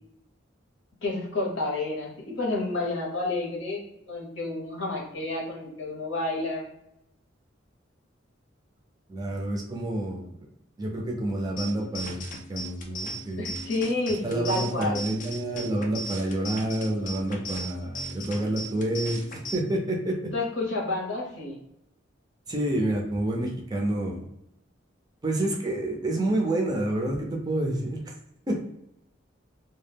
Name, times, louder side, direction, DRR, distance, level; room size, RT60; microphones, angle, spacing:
voice 1, 1.0-3.8 4.1-6.6 13.4-15.0 20.3-21.6, left 2 dB, 70° left, -3 dB, 0.9 m, -30 dB
voice 2, 9.1-10.4 10.8-13.6 14.2-20.1 22.5-24.2 25.2-28.0 28.5-28.6, right 1 dB, 20° right, -1 dB, 0.4 m, -28 dB
sound 1, 11.6-19.6, equal, 40° left, 0.4 m, -38 dB
2.2 x 2.1 x 3.2 m, 0.82 s
head